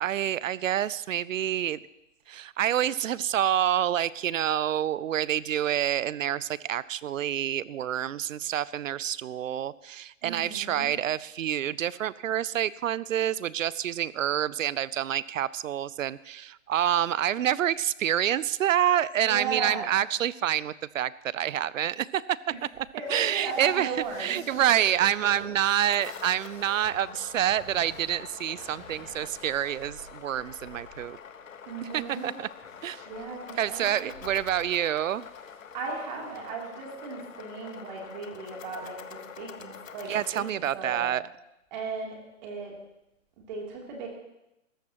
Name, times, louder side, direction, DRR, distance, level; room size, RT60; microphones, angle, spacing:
voice 1, 0.0-1.8 2.3-22.4 22.8-23.9 24.2-31.2 31.8-32.5 32.8-33.0 33.6-35.3 40.1-41.2, right 11 dB, 80° right, 20 dB, 0.6 m, -27 dB
voice 2, 10.2-10.9 19.2-19.9 22.9-24.4 31.7-32.3 33.0-34.1 35.7-41.1 41.7-42.7 43.5-44.1, right 4 dB, 35° right, -1 dB, 3.1 m, -36 dB
sound 1, 23.0-36.5, left 1 dB, 10° left, 6.1 m, -53 dB
sound 2, 25.6-40.5, left 7 dB, 80° left, 1.1 m, -46 dB
19.0 x 14.0 x 3.0 m, 0.89 s
hypercardioid pair, 150°, 39 cm